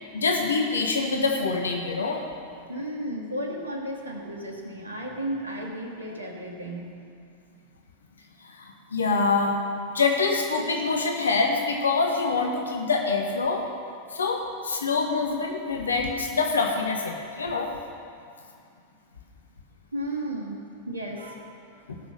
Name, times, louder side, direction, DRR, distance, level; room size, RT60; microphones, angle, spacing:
voice 1, 0.1-2.2 8.6-9.6 9.9-13.6 14.1-17.7 21.9-22.0, left 4 dB, 70° left, 2 dB, 1.3 m, -25 dB
voice 2, 2.5-7.1 19.9-20.6 20.9-21.8, right 1 dB, 80° right, 1 dB, 1.7 m, -34 dB
17.5 x 6.4 x 6.6 m, 2.4 s
figure-of-eight pair, 90°, 0 cm